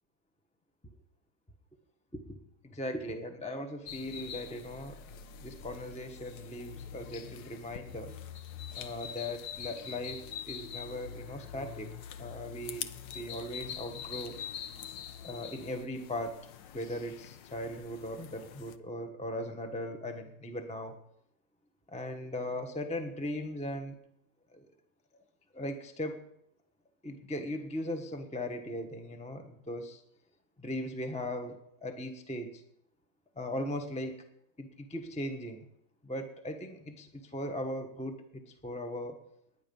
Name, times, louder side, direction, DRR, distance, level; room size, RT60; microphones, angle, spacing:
voice 1, 2.6-5.0 5.4-8.2 8.8-11.9 12.2-14.4 15.2-16.5 16.7-20.9 21.9-23.9 24.5-24.6 25.5-26.2 27.0-30.0 30.6-32.6 33.4-34.2 34.6-35.6 36.0-39.2, left 1 dB, 5° left, 6 dB, 0.8 m, -38 dB
sound 1, 3.9-18.8, left 8 dB, 80° left, 1.5 m, -44 dB
19.5 x 10.0 x 5.5 m, 0.78 s
omnidirectional pair, 2.0 m